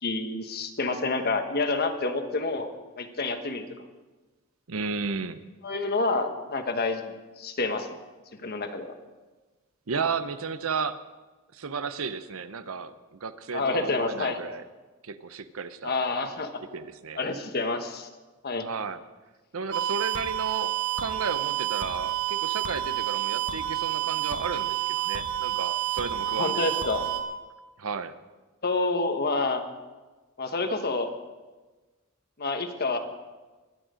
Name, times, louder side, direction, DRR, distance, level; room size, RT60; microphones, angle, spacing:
voice 1, 0.0-2.7 3.0-3.7 5.6-7.9 8.4-8.9 13.5-14.4 15.8-16.6 17.2-18.1 18.4-18.7 26.2-27.0 28.6-29.6 30.4-31.1 32.4-33.0, left 3 dB, 45° left, 6 dB, 1.3 m, -28 dB
voice 2, 4.7-5.4 9.9-11.0 11.5-14.6 15.0-16.0 16.6-17.2 18.6-19.0 19.5-26.9 27.8-28.1, right 5 dB, 70° right, 12 dB, 0.8 m, -33 dB
sound 1, 19.7-27.2, right 13 dB, 55° right, 1.7 m, -29 dB
23.0 x 9.0 x 5.1 m, 1.2 s
head